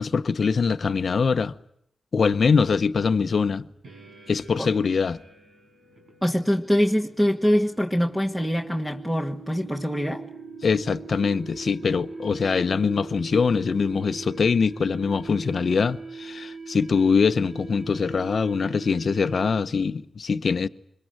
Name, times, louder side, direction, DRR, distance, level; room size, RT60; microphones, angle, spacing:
voice 1, 0.0-1.5 2.1-3.7 4.3-5.2 10.6-20.7, left 5 dB, 60° left, 1.0 m, -23 dB
sound 1, 3.8-19.8, right 4 dB, 75° right, 5.2 m, -41 dB
voice 2, 6.2-10.2, equal, 5° right, 1.8 m, -24 dB
25.5 x 22.5 x 9.0 m
cardioid pair, 75°, 0 cm